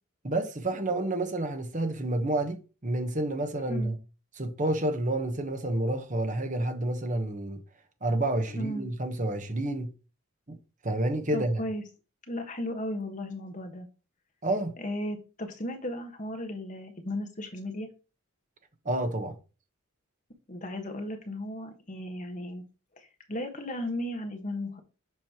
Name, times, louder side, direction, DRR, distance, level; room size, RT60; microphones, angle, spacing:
voice 1, 0.2-4.0 4.4-7.6 8.0-9.9 10.5-10.6 10.8-11.6 14.4-14.7 18.8-19.3, right 1 dB, 35° right, 1.1 m, -29 dB
voice 2, 8.5-8.9 11.3-11.8 12.3-13.9 14.8-17.9 20.5-22.6 22.9-24.8, left 1 dB, 35° left, 1.4 m, -35 dB
7.7 x 5.4 x 3.0 m
head